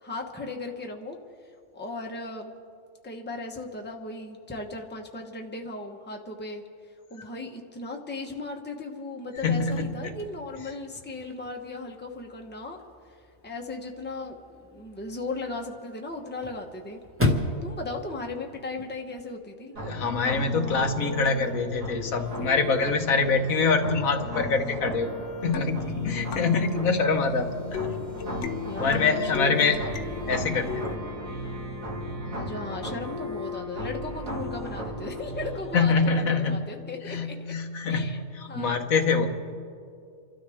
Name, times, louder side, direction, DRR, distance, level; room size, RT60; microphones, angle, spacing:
voice 1, 0.0-1.2 1.7-2.5 3.0-6.6 7.1-12.8 13.1-13.2 13.4-17.0 17.6-19.8 28.6-29.8 32.3-37.3 37.9-38.2 38.5-38.7, left 2 dB, 10° left, 2 dB, 1.0 m, -37 dB
voice 2, 9.4-10.1 19.8-25.1 25.4-28.0 28.4-29.8 30.3-30.9 35.7-36.6 37.0-39.3, left 4 dB, 80° left, 5 dB, 1.5 m, -25 dB
Chirp tweet / Car / Slam, 9.4-19.3, left 1 dB, 10° right, 1.4 m, -36 dB
sound 1, 19.7-35.7, left 1 dB, 75° right, 2.6 m, -36 dB
sound 2, 25.5-31.0, left 9 dB, 65° left, 0.9 m, -37 dB
30.0 x 13.0 x 3.5 m, 2.3 s
omnidirectional pair, 1.4 m